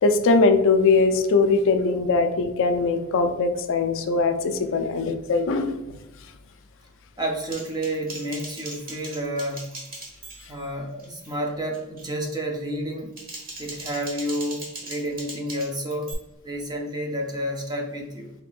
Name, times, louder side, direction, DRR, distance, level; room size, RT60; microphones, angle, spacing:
voice 1, 0.0-5.7, left 3 dB, 60° left, 8 dB, 0.4 m, -21 dB
voice 2, 7.2-9.6 10.5-13.1 13.6-16.1 16.4-18.3, right 1 dB, 20° right, 0 dB, 0.7 m, -30 dB
Typing, 7.5-10.7 11.0-11.4 11.7-12.1 12.9-16.1, right 2 dB, 40° right, 1.1 m, -39 dB
4.6 x 3.5 x 2.5 m, 0.96 s
head